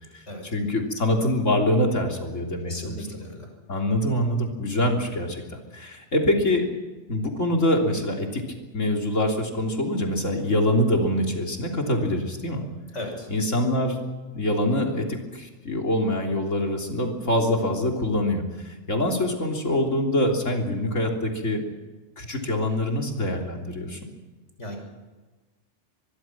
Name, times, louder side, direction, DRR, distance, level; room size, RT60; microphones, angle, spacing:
voice 1, 0.5-3.0 3.7-6.7 7.1-8.4 8.7-12.6 13.3-14.0 14.3-21.6 22.2-24.0, left 1 dB, 85° left, 2 dB, 3.7 m, -24 dB
voice 2, 2.7-3.5 12.9-13.3 13.7-13.8 24.6-24.8, left 1 dB, 70° left, 3 dB, 6.4 m, -36 dB
24.5 x 22.0 x 6.0 m, 1.2 s
omnidirectional pair, 1.3 m